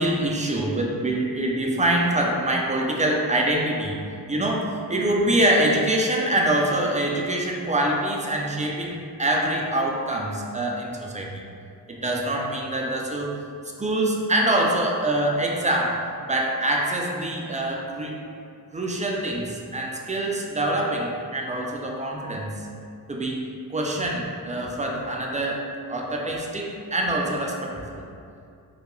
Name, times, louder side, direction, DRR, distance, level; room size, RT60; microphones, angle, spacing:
voice 1, 0.0-4.0 4.3-11.4 11.9-13.4 13.8-16.0 16.3-18.2 18.7-22.6 23.1-25.6 25.9-28.0, right 1 dB, 20° right, -1 dB, 0.3 m, -25 dB
2.3 x 2.2 x 2.9 m, 2.4 s
cardioid pair, 40°, 41 cm